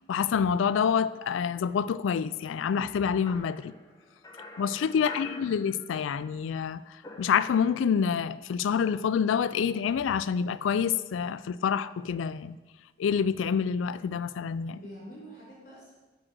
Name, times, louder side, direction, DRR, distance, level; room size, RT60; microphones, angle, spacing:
voice 1, 0.1-3.7 4.6-6.8 7.2-12.6 13.0-14.8, left 7 dB, 85° left, 0.3 m, -27 dB
sound 1, 3.3-6.3 6.5-8.0, left 2 dB, 20° left, 0.7 m, -47 dB
voice 2, 4.9-5.5 14.7-15.9, equal, 50° left, 3.0 m, -46 dB
6.3 x 6.2 x 6.1 m
head